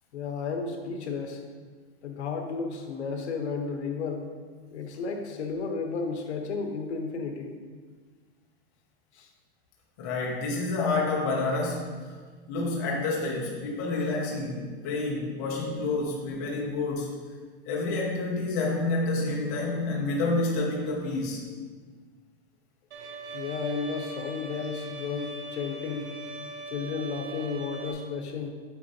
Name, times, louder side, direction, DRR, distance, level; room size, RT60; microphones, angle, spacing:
voice 1, 0.1-1.4 2.0-4.3 4.7-7.6 9.1-9.3 23.3-26.1 26.7-28.5, left 5 dB, 75° left, 4 dB, 1.0 m, -33 dB
voice 2, 10.0-11.9 12.5-17.1 17.7-21.4, left 2 dB, 15° left, -3 dB, 0.4 m, -28 dB
Bowed string instrument, 22.9-27.9, right 1 dB, 80° right, 1.1 m, -40 dB
8.4 x 4.3 x 2.7 m, 1.5 s
supercardioid pair, 175°, 33 cm